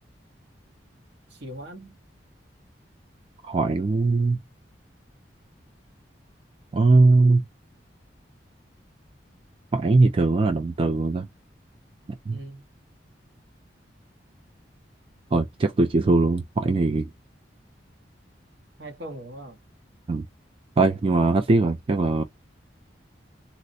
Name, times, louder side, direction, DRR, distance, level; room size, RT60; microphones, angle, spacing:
voice 1, 1.3-2.0 12.3-12.7 18.8-19.6, right 1 dB, 65° right, 1.0 m, -41 dB
voice 2, 3.4-4.4 6.7-7.4 9.7-11.3 12.3-12.4 15.3-17.1 20.1-20.2 20.8-22.2, right 3 dB, 30° right, 0.3 m, -20 dB
4.0 x 2.0 x 2.6 m
head